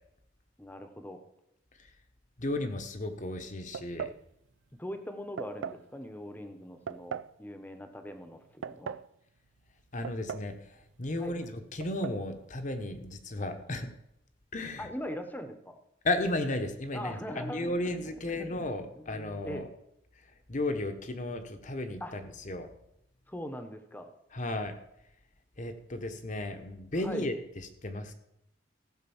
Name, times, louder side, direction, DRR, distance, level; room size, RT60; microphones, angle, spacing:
voice 1, 0.6-1.2 4.8-9.0 11.2-11.4 14.8-15.8 16.9-18.6 18.9-19.7 22.0-22.1 23.3-24.1 27.0-27.3, equal, 10° left, 7 dB, 1.0 m, -41 dB
voice 2, 2.4-4.1 9.9-10.6 11.0-13.9 14.5-14.9 16.0-19.7 20.5-22.7 24.3-24.8 25.6-27.3 27.8-28.1, left 1 dB, 40° left, 7 dB, 1.1 m, -34 dB
sound 1, 3.7-4.2 5.4-5.8 6.9-7.3 8.4-9.1 10.0-10.6 10.8-10.9 11.8-12.2, right 7 dB, 80° right, 0.4 m, -39 dB
15.0 x 5.4 x 7.1 m, 0.80 s
head